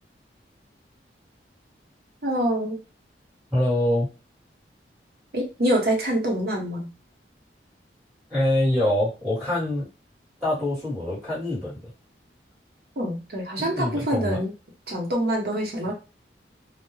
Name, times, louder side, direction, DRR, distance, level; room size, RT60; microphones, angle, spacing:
voice 1, 2.2-2.8 5.3-6.9 13.0-14.5 14.9-15.9, right 1 dB, 60° right, 0 dB, 0.8 m, -25 dB
voice 2, 3.5-4.1 8.3-9.9 10.4-11.9 13.6-14.4, left 1 dB, 10° right, -10 dB, 1.3 m, -25 dB
2.2 x 2.0 x 3.1 m, 0.30 s
head